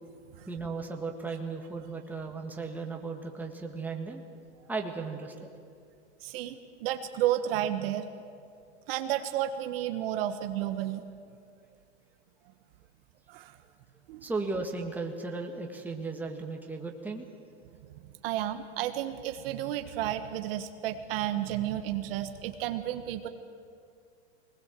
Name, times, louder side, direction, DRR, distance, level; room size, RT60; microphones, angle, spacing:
voice 1, 0.5-4.2 4.7-5.5 14.2-17.3, right 3 dB, 5° right, 1 dB, 1.8 m, -36 dB
voice 2, 6.2-8.1 8.9-11.0 13.3-13.6 14.1-14.2 17.8-23.3, right 12 dB, 55° right, 7 dB, 1.3 m, -32 dB
22.5 x 20.0 x 7.6 m, 2.3 s
hypercardioid pair, 135°, 34 cm